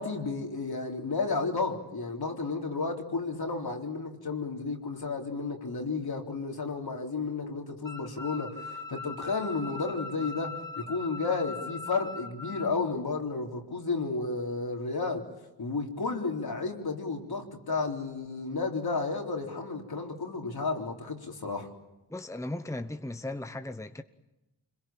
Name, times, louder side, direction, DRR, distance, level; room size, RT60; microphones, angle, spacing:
voice 1, 0.0-15.2 15.6-21.7, left 4 dB, 65° left, 4.0 m, -32 dB
sound 1, 7.8-12.7, left 3 dB, 30° right, 2.8 m, -40 dB
voice 2, 22.1-24.0, left 1 dB, 5° left, 1.1 m, -37 dB
26.5 x 22.0 x 8.9 m
cardioid pair, 65°, 41 cm